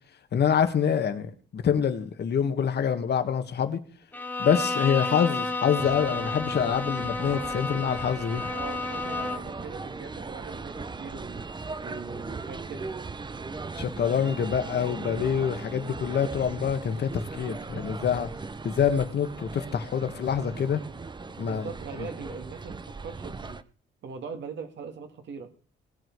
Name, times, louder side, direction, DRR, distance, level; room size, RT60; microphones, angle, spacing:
voice 1, 0.3-3.8 4.4-8.5 13.7-18.3 18.6-20.8 21.4-21.7, left 7 dB, 55° left, 9 dB, 1.7 m, -26 dB
Bowed string instrument, 4.1-9.6, left 3 dB, 10° left, 1.4 m, -31 dB
sound 1, 5.8-23.6, right 4 dB, 20° right, 0.8 m, -39 dB
voice 2, 8.5-11.5 11.8-12.9 21.4-23.6 24.0-25.5, right 5 dB, 65° right, 6 dB, 2.4 m, -41 dB
19.5 x 7.5 x 4.8 m, 0.43 s
cardioid pair, 90°, 20 cm